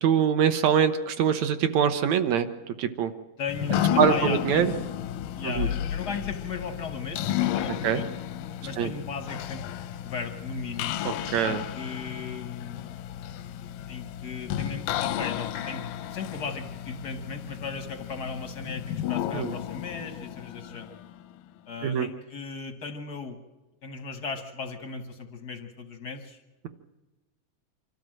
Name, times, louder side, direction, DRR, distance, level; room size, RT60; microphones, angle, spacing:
voice 1, 0.0-2.5 2.8-3.1 4.0-4.7 5.4-5.7 7.8-8.0 8.8-8.9 11.1-11.7 19.3-19.6 21.8-22.1, right 8 dB, 70° right, 9 dB, 1.9 m, -23 dB
voice 2, 3.4-4.9 5.3-8.1 8.6-9.6 10.0-11.0 11.4-13.0 13.9-21.0 21.7-23.4 23.8-26.4, left 5 dB, 60° left, 6 dB, 1.0 m, -37 dB
sound 1, 3.5-21.3, left 11 dB, 85° left, 2.4 m, -32 dB
26.0 x 13.0 x 7.6 m, 1.1 s
omnidirectional pair, 3.8 m